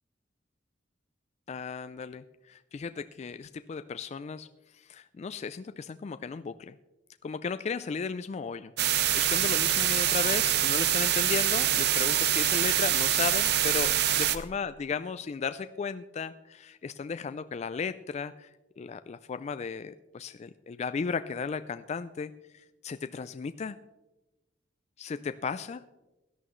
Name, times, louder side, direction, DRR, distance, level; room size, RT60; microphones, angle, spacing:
voice 1, 1.5-4.5 4.7-6.7 7.2-8.7 9.1-18.5 18.8-23.8 25.0-25.8, left 5 dB, 35° left, 11 dB, 0.3 m, -35 dB
sound 1, 8.8-14.4, right 11 dB, 60° right, 0.7 m, -25 dB
17.0 x 11.0 x 3.1 m, 1.1 s
head